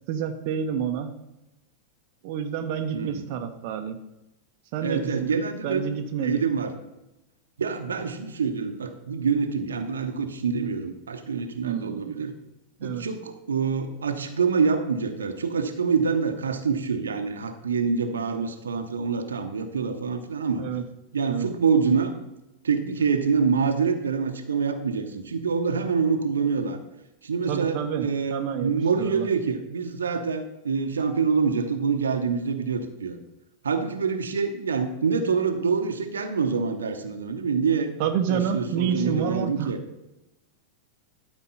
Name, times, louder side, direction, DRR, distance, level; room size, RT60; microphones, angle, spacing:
voice 1, 0.1-1.1 2.2-4.0 4.7-6.4 11.6-12.2 12.8-13.0 20.6-20.8 21.3-21.5 27.4-28.7 29.0-29.3 38.0-39.7, right 7 dB, 45° right, 5 dB, 0.8 m, -29 dB
voice 2, 4.8-5.9 6.2-6.7 7.6-12.3 12.8-20.6 21.1-22.1 22.6-26.8 27.2-33.2 33.6-37.9 38.3-39.8, right 5 dB, 70° right, 7 dB, 0.9 m, -26 dB
12.0 x 4.5 x 5.5 m, 0.94 s
figure-of-eight pair, 90°, 0 cm